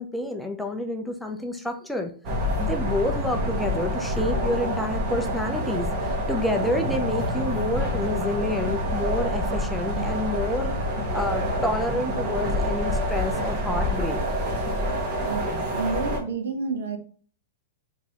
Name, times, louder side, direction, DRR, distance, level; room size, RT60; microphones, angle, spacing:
voice 1, 0.0-2.1 2.6-5.9 6.3-10.7 11.1-14.2, left 1 dB, ahead, 3 dB, 0.5 m, -28 dB
sound 1, 2.2-16.2, equal, 40° right, 1.2 m, -27 dB
voice 2, 15.2-17.0, right 4 dB, 80° right, 5 dB, 1.0 m, -30 dB
3.9 x 3.5 x 2.9 m, 0.43 s
hypercardioid pair, 150°, 0 cm